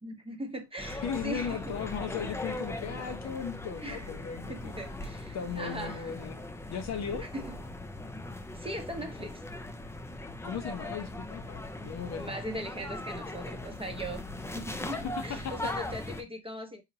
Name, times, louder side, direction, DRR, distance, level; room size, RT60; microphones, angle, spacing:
voice 1, 0.0-1.7 3.8-4.1 4.5-6.2 7.2-7.6 8.5-9.4 12.1-14.3 14.5-16.8, right 1 dB, 15° right, 0.8 m, -39 dB
sound 1, 0.8-16.2, left 1 dB, 5° left, 0.5 m, -39 dB
voice 2, 1.0-4.8 5.3-6.4 6.7-7.3 10.4-12.4 14.9-15.5, left 7 dB, 45° left, 0.7 m, -37 dB
4.0 x 2.9 x 2.7 m
supercardioid pair, 75°, 38 cm